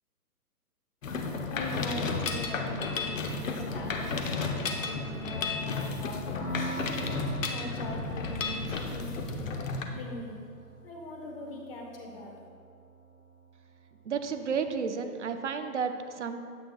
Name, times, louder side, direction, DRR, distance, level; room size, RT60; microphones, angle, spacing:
Mechanisms, 1.0-9.8, left 4 dB, 55° left, 0.9 m, -33 dB
voice 1, 1.5-6.8 7.5-10.4 10.8-12.3, left 1 dB, 35° left, 0 dB, 1.3 m, -41 dB
Piano, 6.4-13.8, right 2 dB, 15° left, 0.9 m, -43 dB
voice 2, 14.0-16.4, right 6 dB, 50° right, 7 dB, 0.6 m, -32 dB
11.0 x 8.0 x 2.3 m, 2.3 s
hypercardioid pair, 170°, 47 cm